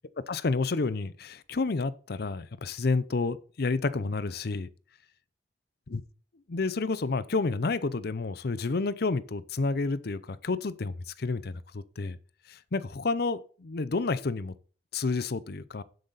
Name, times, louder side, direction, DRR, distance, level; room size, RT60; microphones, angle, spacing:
voice 1, 0.3-4.7 5.9-6.0 6.5-12.2 12.5-14.5 14.9-15.8, left 3 dB, 60° left, 0.6 m, -30 dB
11.5 x 8.0 x 4.1 m
head